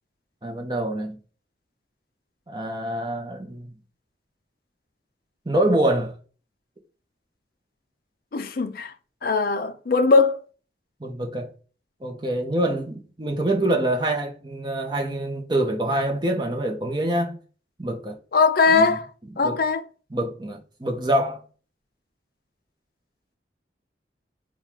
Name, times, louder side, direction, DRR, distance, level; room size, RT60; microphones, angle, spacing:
voice 1, 0.4-1.2 2.5-3.7 5.5-6.1 11.0-11.5 12.0-17.4 17.8-18.2 18.7-19.0 19.4-19.6 20.1-21.4, right 1 dB, 25° right, 0.8 m, -25 dB
voice 2, 8.3-8.9 9.2-10.4 18.3-19.1 19.4-19.8, left 4 dB, 50° left, 0.5 m, -20 dB
3.6 x 2.3 x 4.5 m
head